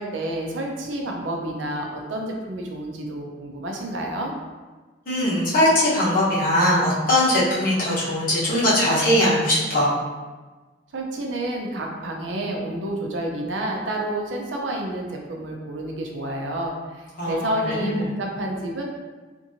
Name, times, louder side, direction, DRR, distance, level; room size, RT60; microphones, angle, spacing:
voice 1, 0.0-4.3 10.9-18.8, right 1 dB, 75° right, 0 dB, 0.5 m, -29 dB
voice 2, 5.1-9.9 17.2-18.2, left 1 dB, 45° left, -8 dB, 1.0 m, -20 dB
2.8 x 2.6 x 2.6 m, 1.3 s
head